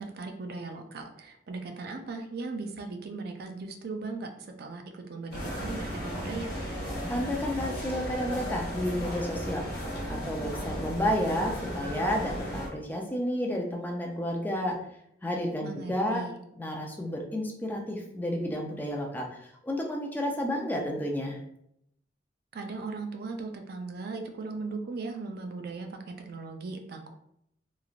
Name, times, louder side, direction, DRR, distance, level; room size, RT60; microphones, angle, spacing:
voice 1, 0.0-6.5 15.6-16.4 22.5-27.1, right 3 dB, 60° right, 4 dB, 0.4 m, -38 dB
sound 1, 5.3-12.7, equal, 65° left, 1.0 m, -35 dB
voice 2, 7.1-9.6 10.1-14.8 15.2-16.2 16.6-19.3 19.6-21.4, left 1 dB, 10° left, 0 dB, 0.4 m, -31 dB
3.1 x 2.5 x 2.4 m, 0.74 s
head